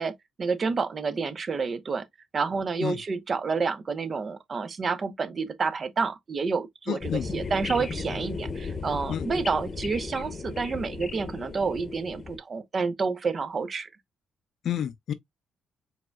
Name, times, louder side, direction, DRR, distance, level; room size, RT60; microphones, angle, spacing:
voice 1, 0.0-2.1 2.3-13.9, right 4 dB, 40° right, 0.8 m, -29 dB
voice 2, 6.9-7.2 9.1-9.3 14.6-15.1, left 9 dB, 65° left, 0.5 m, -29 dB
sound 1, 7.0-12.4, left 4 dB, 35° left, 0.8 m, -35 dB
4.8 x 3.5 x 2.2 m
cardioid pair, 90°, 0 cm